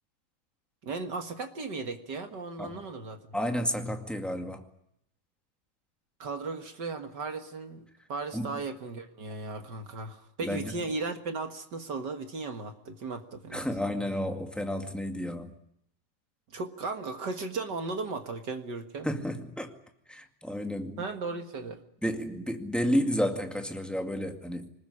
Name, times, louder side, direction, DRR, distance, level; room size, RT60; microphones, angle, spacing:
voice 1, 0.8-3.2 6.2-13.7 16.5-19.1 21.0-21.8, right 3 dB, 40° right, 7 dB, 1.7 m, -36 dB
voice 2, 3.3-4.6 8.3-8.5 10.4-10.7 13.5-15.6 19.0-19.8 20.1-21.0 22.0-24.7, equal, ahead, 4 dB, 1.2 m, -31 dB
25.5 x 20.5 x 9.8 m, 0.76 s
omnidirectional pair, 3.7 m